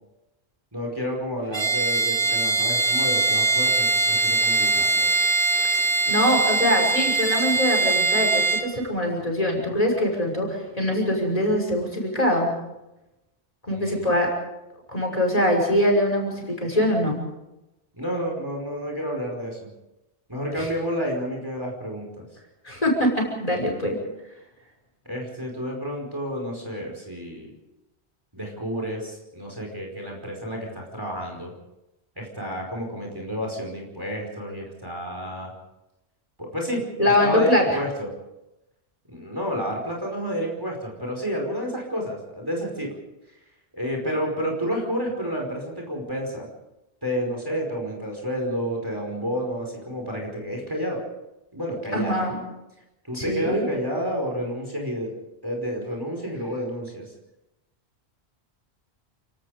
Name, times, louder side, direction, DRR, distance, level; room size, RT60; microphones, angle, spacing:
voice 1, 0.7-5.1 13.7-14.0 17.9-19.6 20.3-22.3 25.1-27.5 28.3-31.5 32.2-35.5 36.4-38.1 39.1-42.9 43.7-46.5 47.0-51.0 51.5-52.2 53.0-55.1 55.4-57.1, equal, 20° right, 0 dB, 5.1 m, -30 dB
Bowed string instrument, 1.5-8.7, right 3 dB, 60° right, 2.1 m, -22 dB
voice 2, 6.1-12.5 13.7-14.3 14.9-17.2 20.6-20.7 22.6-24.0 37.0-37.8 51.9-52.4 53.1-53.6, left 1 dB, 35° left, 0 dB, 6.1 m, -23 dB
29.5 x 18.5 x 5.1 m, 0.94 s
omnidirectional pair, 1.1 m